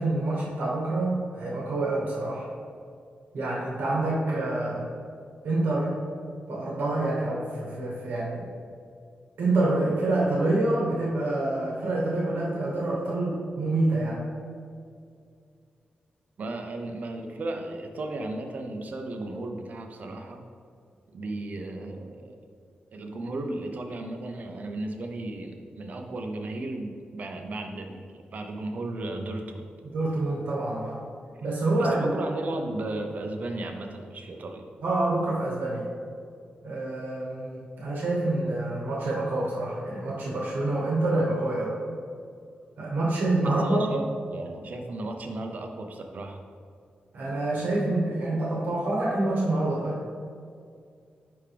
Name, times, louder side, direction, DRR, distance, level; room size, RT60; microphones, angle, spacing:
voice 1, 0.0-2.5 3.3-4.9 5.4-5.9 6.5-8.4 9.4-14.2 29.8-31.0 31.4-32.1 34.8-35.8 36.6-41.7 42.8-43.9 47.1-50.0, right 2 dB, 75° right, -5 dB, 1.2 m, -27 dB
voice 2, 16.4-20.4 21.1-22.4 22.9-28.0 28.3-29.7 31.8-34.7 43.4-46.4, right 2 dB, 50° right, 4 dB, 0.7 m, -35 dB
9.8 x 3.5 x 3.4 m, 2.3 s
wide cardioid pair, 145°, 3 cm